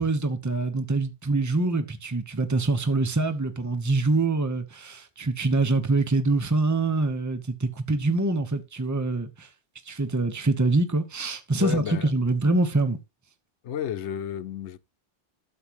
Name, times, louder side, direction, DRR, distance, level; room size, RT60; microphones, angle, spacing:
voice 1, 0.0-9.5 9.9-13.0, right 3 dB, 15° right, 1.0 m, -25 dB
voice 2, 11.6-12.1 13.6-14.8, left 9 dB, 85° left, 1.0 m, -31 dB
12.0 x 7.8 x 3.0 m
omnidirectional pair, 1.1 m